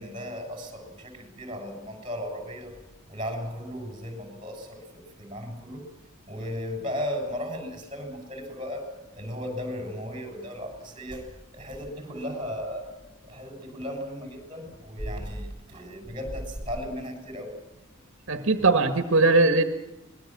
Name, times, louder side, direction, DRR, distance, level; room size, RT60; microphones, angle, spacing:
voice 1, 0.0-2.8 3.1-5.9 6.3-11.3 11.5-12.9 13.2-17.6 18.3-18.7, equal, 25° right, 5 dB, 7.0 m, -36 dB
voice 2, 18.3-19.6, right 3 dB, 65° right, 8 dB, 1.7 m, -20 dB
25.0 x 21.0 x 7.5 m, 0.96 s
head